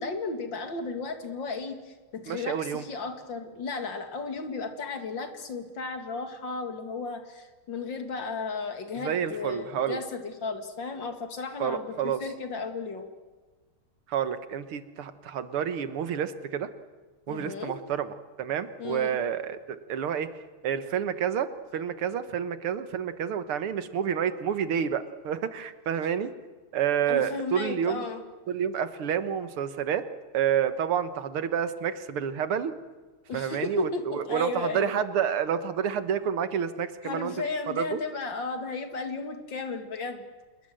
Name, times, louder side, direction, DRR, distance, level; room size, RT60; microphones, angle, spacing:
voice 1, 0.0-13.1 17.3-17.7 18.8-19.2 27.1-28.2 33.3-34.9 37.0-40.3, left 4 dB, 60° left, 6 dB, 2.8 m, -34 dB
voice 2, 2.3-2.8 9.0-10.0 11.6-12.2 14.1-16.7 17.3-20.3 20.6-26.3 26.7-28.1 28.5-30.1 30.3-32.8 33.3-37.3 37.8-38.0, right 8 dB, 80° right, 12 dB, 2.2 m, -29 dB
27.0 x 21.5 x 7.8 m, 1.3 s
omnidirectional pair, 2.4 m